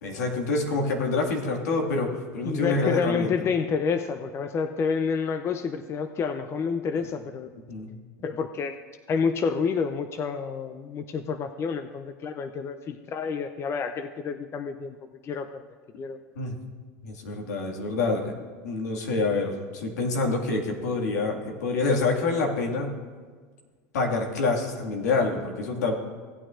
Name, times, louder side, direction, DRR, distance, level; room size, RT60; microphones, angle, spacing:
voice 1, 0.0-3.3 7.7-7.9 16.4-16.6 17.0-18.3 18.6-22.9 23.9-25.9, left 3 dB, 85° left, 1 dB, 2.0 m, -27 dB
voice 2, 2.4-7.5 8.2-8.8 9.1-15.0 15.2-15.7 16.0-16.2, left 5 dB, 30° left, 8 dB, 0.5 m, -29 dB
17.5 x 8.9 x 2.5 m, 1.5 s
supercardioid pair, 110°, 9 cm